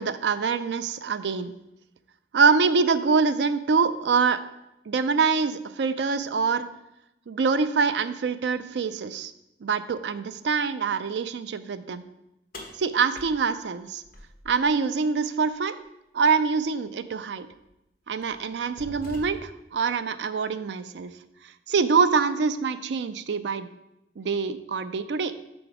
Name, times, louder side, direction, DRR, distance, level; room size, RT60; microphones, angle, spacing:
voice 1, 0.0-1.5 2.3-4.4 4.9-6.7 7.3-9.3 9.6-12.0 12.8-14.0 14.5-15.8 16.1-17.5 18.1-21.1 21.7-23.7 24.2-25.3, right 5 dB, 75° right, 11 dB, 0.4 m, -25 dB
sound 1, 12.5-14.7 16.6-16.7 17.5-17.7 18.2-19.7, left 1 dB, 50° left, 1.2 m, -44 dB
6.1 x 4.8 x 4.8 m, 0.89 s
head